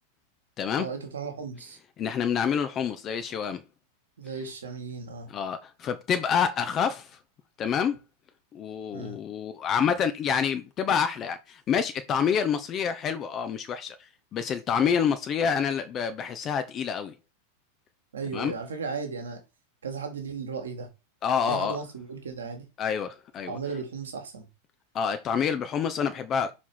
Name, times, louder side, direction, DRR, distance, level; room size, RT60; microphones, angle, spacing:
voice 1, 0.8-1.8 4.2-5.3 8.9-9.2 18.1-19.4 19.8-20.9 21.5-22.7 23.5-24.5, right 5 dB, 65° right, 1.8 m, -35 dB
voice 2, 2.0-3.6 5.3-7.2 7.6-8.0 8.5-14.0 14.3-17.1 18.3-18.5 21.2-21.8 22.8-23.6 24.9-26.5, left 7 dB, 30° left, 0.7 m, -27 dB
5.6 x 4.3 x 4.5 m
figure-of-eight pair, 90°, 0 cm